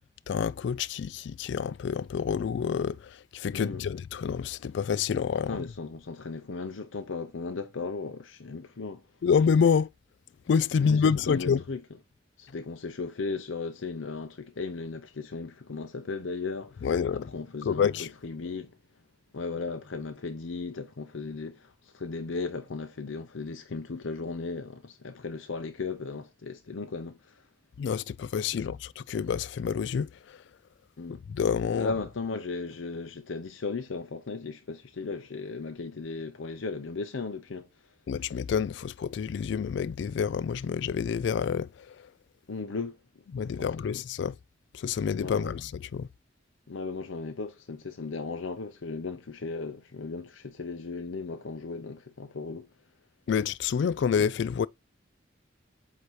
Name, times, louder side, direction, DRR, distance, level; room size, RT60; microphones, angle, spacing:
voice 1, 0.3-5.6 9.2-9.9 10.5-11.6 16.8-17.3 17.6-18.1 27.8-30.4 31.3-31.9 38.1-42.1 43.3-44.4 44.7-46.1 53.3-54.7, left 6 dB, 65° left, 0.3 m, -28 dB
voice 2, 3.5-3.8 5.5-9.0 10.8-11.0 11.3-11.8 12.4-16.9 17.1-18.7 19.3-27.3 28.5-28.6 31.0-31.2 31.7-37.7 42.5-43.0 43.5-43.9 45.2-45.5 46.7-52.7, left 4 dB, 90° left, 0.7 m, -36 dB
8.1 x 2.8 x 4.6 m
head